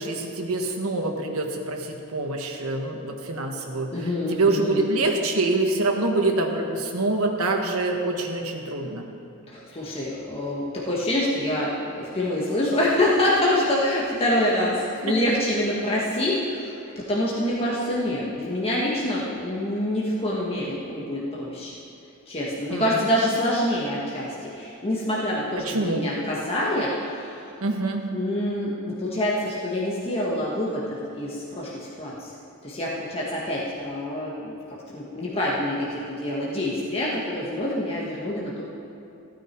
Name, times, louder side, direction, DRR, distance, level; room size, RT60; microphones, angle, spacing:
voice 1, 0.0-3.9 4.3-9.0 22.7-23.0 25.6-26.1 27.6-28.0, right 2 dB, 75° right, 2 dB, 1.4 m, -25 dB
voice 2, 3.9-4.9 9.5-21.7 22.3-27.5 28.1-32.3 32.6-34.5 34.9-38.6, left 1 dB, 25° left, -6 dB, 1.5 m, -26 dB
15.5 x 9.2 x 4.5 m, 2.8 s
head